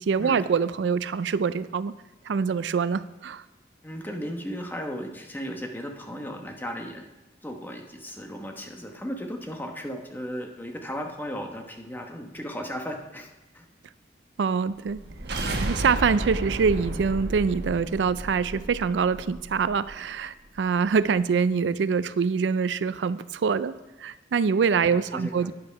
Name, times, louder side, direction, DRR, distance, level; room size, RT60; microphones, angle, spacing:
voice 1, 0.0-1.9 2.3-3.4 14.4-15.0 15.6-23.7 24.0-25.5, right 5 dB, 90° right, 15 dB, 0.4 m, -25 dB
voice 2, 3.8-7.0 7.4-13.3 13.5-13.7 24.9-25.5, equal, 10° left, 3 dB, 1.1 m, -35 dB
sound 1, 14.9-20.0, right 1 dB, 65° right, 1.2 m, -33 dB
9.6 x 7.9 x 5.6 m, 1.0 s
head